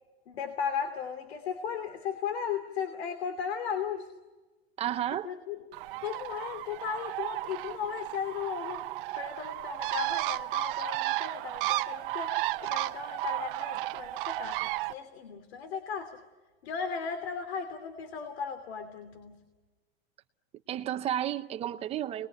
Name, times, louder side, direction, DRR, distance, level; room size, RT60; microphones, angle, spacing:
voice 1, 0.3-4.1 5.2-5.6 6.0-8.8 9.2-16.2 16.6-19.4, left 7 dB, 85° left, 9 dB, 2.8 m, -36 dB
voice 2, 4.8-5.3 20.7-22.3, right 11 dB, 20° right, 9 dB, 0.8 m, -32 dB
Bird, 5.7-14.9, right 18 dB, 55° right, 0.9 m, -33 dB
29.0 x 21.0 x 9.2 m, 1.3 s
supercardioid pair, 170°, 31 cm